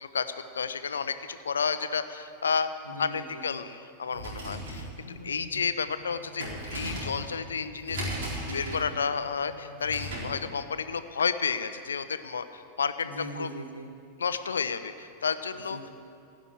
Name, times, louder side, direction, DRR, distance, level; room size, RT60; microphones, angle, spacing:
voice 1, 0.5-2.7 3.0-8.0 8.5-13.1 13.4-13.5 14.2-15.8, left 6 dB, 70° left, 11 dB, 0.6 m, -31 dB
voice 2, 2.8-3.4 5.0-5.6 8.3-8.9 13.0-13.9 15.5-15.9, equal, 85° left, 5 dB, 1.3 m, -41 dB
sound 1, 4.0-10.4, equal, 55° right, 4.1 m, -37 dB
16.0 x 6.2 x 9.8 m, 2.4 s
figure-of-eight pair, 90°, 0 cm